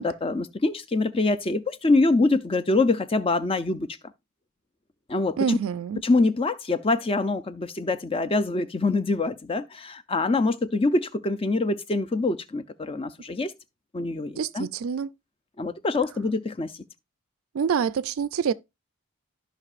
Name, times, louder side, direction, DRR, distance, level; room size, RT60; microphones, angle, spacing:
voice 1, 0.0-3.9 5.1-5.6 6.0-13.5 13.9-14.7 15.6-16.7, left 3 dB, 25° left, 0.5 m, -25 dB
voice 2, 5.4-6.0 14.4-15.1 17.5-18.5, right 7 dB, 70° right, 0.4 m, -26 dB
13.5 x 5.5 x 2.5 m
head